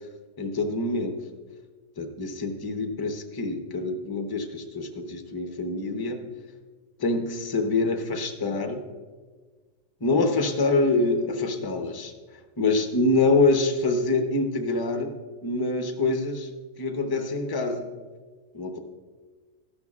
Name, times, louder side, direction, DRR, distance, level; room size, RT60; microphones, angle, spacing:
voice 1, 0.4-1.2 2.0-6.2 7.0-8.8 10.0-12.1 12.6-15.1 15.4-16.5 16.8-17.9 18.5-18.8, left 3 dB, 25° left, 5 dB, 0.6 m, -25 dB
13.5 x 12.0 x 2.4 m, 1.4 s
omnidirectional pair, 1.4 m